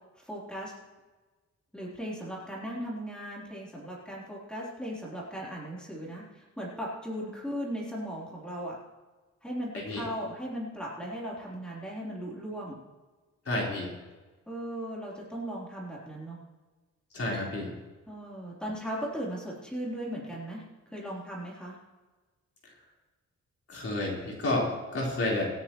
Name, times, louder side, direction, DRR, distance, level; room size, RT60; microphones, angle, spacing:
voice 1, 0.2-0.7 1.7-8.8 9.4-12.8 14.5-16.4 18.1-20.6 20.9-21.8, equal, 5° left, -5 dB, 3.6 m, -37 dB
voice 2, 13.5-13.9 17.1-17.7 23.7-25.5, left 1 dB, 50° left, -4 dB, 4.2 m, -30 dB
26.0 x 9.7 x 3.1 m, 1.3 s
wide cardioid pair, 175°, 29 cm